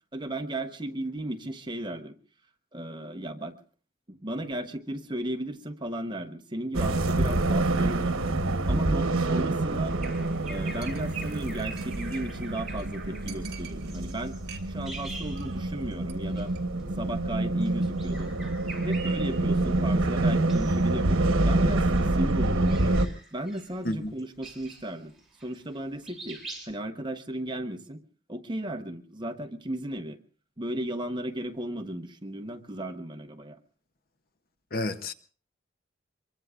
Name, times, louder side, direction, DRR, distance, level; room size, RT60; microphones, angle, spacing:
voice 1, 0.1-2.1 2.7-3.5 4.1-8.2 8.7-10.0 10.5-14.3 14.6-16.5 17.0-18.3 18.8-21.9 22.1-23.0 23.3-25.1 25.4-26.4 26.6-28.0 28.3-30.2 30.6-33.6, right 1 dB, 20° right, 1.0 m, -35 dB
sound 1, 6.7-23.1, right 2 dB, 85° right, 1.1 m, -27 dB
Bird vocalization bird call bird song, 9.9-15.9 16.3-16.5 17.5-19.8 20.3-20.9 21.3-25.8 26.0-26.7, right 3 dB, ahead, 6.1 m, -44 dB
Chink clink, 10.0-10.2 10.5-10.6 10.8-12.1 12.5-12.6 12.8-12.9 13.3-14.1 14.4-15.0 15.2-15.5 15.8-16.1 16.5-16.6, right 10 dB, 50° right, 2.4 m, -47 dB
voice 2, 34.7-35.1, left 1 dB, 45° left, 0.8 m, -30 dB
25.5 x 23.0 x 2.5 m
head